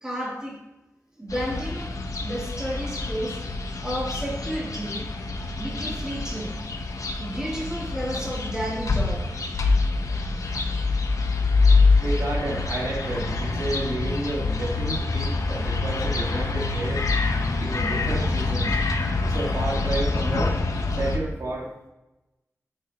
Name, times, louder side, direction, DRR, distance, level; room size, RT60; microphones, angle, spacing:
voice 1, 0.0-0.6 1.2-1.9 2.2-3.4 3.8-5.1 5.6-6.6 7.2-9.3, equal, 10° right, -5 dB, 3.4 m, -32 dB
sound 1, 1.3-21.2, left 3 dB, 85° left, 1.0 m, -25 dB
voice 2, 12.0-17.1 17.6-18.8 19.2-20.6 20.9-21.9, right 2 dB, 70° right, -3 dB, 2.2 m, -31 dB
9.8 x 8.3 x 3.0 m, 0.99 s
wide cardioid pair, 90°, 6 cm